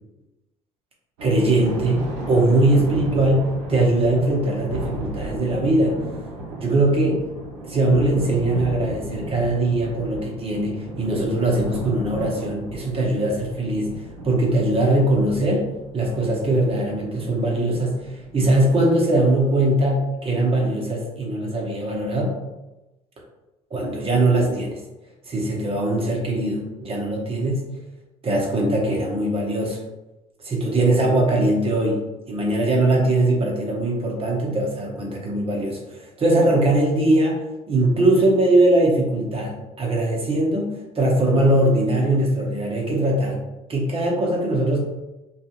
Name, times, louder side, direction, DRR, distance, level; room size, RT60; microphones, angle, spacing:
voice 1, 1.2-6.0 6.6-7.2 7.6-15.7 15.9-22.4 23.7-24.8 25.3-27.7 28.2-29.8 30.4-43.4 43.7-44.8, right 1 dB, 30° right, -1 dB, 0.9 m, -21 dB
Thunder, 1.2-18.9, right 2 dB, 75° right, 0.6 m, -35 dB
2.4 x 2.3 x 2.9 m, 1.0 s
hypercardioid pair, 60°, 18 cm